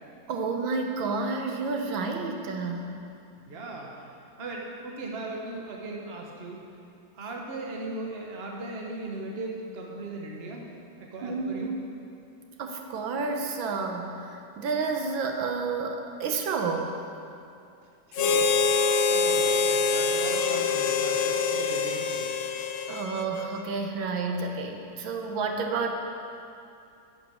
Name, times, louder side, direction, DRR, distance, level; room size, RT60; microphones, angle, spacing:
voice 1, 0.3-3.0 11.2-11.7 12.6-16.9 22.9-25.9, right 4 dB, 80° right, 3 dB, 1.6 m, -30 dB
voice 2, 3.5-3.9 4.4-6.6 7.2-10.6 11.1-11.8 18.1-18.7 19.1-22.2, right 2 dB, 35° right, -1 dB, 1.3 m, -38 dB
Harmonica, 18.1-23.6, left 5 dB, 85° left, 1.4 m, -25 dB
9.8 x 7.3 x 6.2 m, 2.6 s
omnidirectional pair, 2.1 m